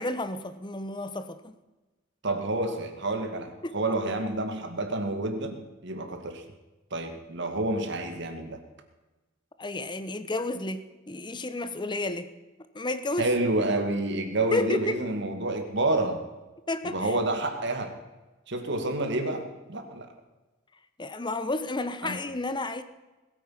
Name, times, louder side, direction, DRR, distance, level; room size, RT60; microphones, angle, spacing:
voice 1, 0.0-1.6 3.6-3.8 9.6-12.3 12.7-13.3 14.5-15.0 16.7-17.1 21.0-22.8, left 2 dB, 25° left, 11 dB, 1.0 m, -31 dB
voice 2, 2.2-6.4 6.9-8.6 13.2-16.3 16.8-18.0 18.5-20.1 22.0-22.2, right 2 dB, 65° right, 6 dB, 2.3 m, -29 dB
20.5 x 9.2 x 5.9 m, 1.1 s
head